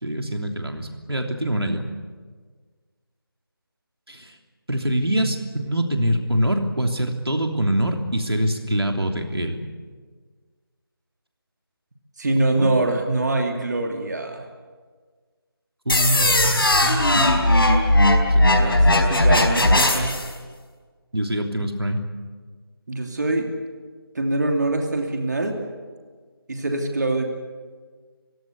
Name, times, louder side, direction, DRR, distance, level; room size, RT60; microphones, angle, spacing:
voice 1, 0.0-1.8 4.1-4.3 4.7-9.7 12.6-12.7 15.8-17.7 18.0-18.5 21.1-22.0, right 1 dB, 85° right, 4 dB, 3.2 m, -24 dB
voice 2, 12.2-14.4 18.6-20.2 22.9-23.5 24.1-25.5 26.5-27.2, right 2 dB, 45° right, 3 dB, 2.9 m, -24 dB
sound 1, 15.9-20.3, left 1 dB, 65° left, 4.5 m, -18 dB
29.0 x 16.5 x 8.4 m, 1.5 s
figure-of-eight pair, 165°, 13 cm